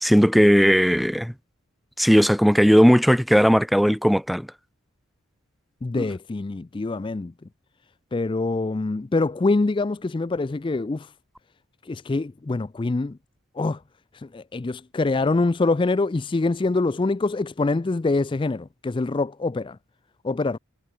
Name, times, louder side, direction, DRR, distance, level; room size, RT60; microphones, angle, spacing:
voice 1, 0.0-1.3 2.0-4.5, equal, ahead, 1.0 m, -17 dB
voice 2, 5.8-7.3 8.1-11.1 11.8-13.2 13.6-13.8 14.1-19.8 20.2-20.6, left 3 dB, 25° left, 0.4 m, -25 dB
head